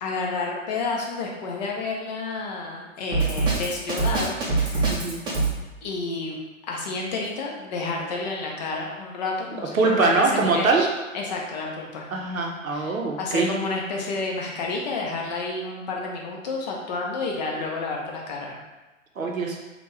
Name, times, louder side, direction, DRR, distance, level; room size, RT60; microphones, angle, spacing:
voice 1, 0.0-4.9 5.2-5.4 5.8-6.4 6.7-10.7 11.1-12.1 12.7-12.9 13.2-18.6, left 3 dB, 35° left, -1 dB, 0.6 m, -30 dB
Drum kit, 3.1-5.5, right 3 dB, 10° right, 0.7 m, -23 dB
voice 2, 4.9-5.2 9.7-10.9 12.1-13.5 19.2-19.6, right 3 dB, 85° right, 1 dB, 0.7 m, -22 dB
3.6 x 2.3 x 3.1 m, 1.1 s
figure-of-eight pair, 115°, 40 cm